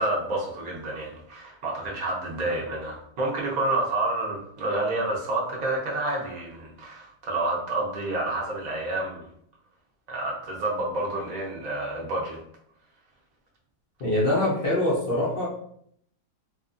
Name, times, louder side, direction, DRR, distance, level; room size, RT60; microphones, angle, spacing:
voice 1, 0.0-9.3 10.1-12.4, right 2 dB, 45° right, -3 dB, 0.5 m, -29 dB
voice 2, 14.0-15.5, left 1 dB, 60° left, -7 dB, 0.6 m, -24 dB
2.8 x 2.3 x 2.5 m, 0.67 s
omnidirectional pair, 1.8 m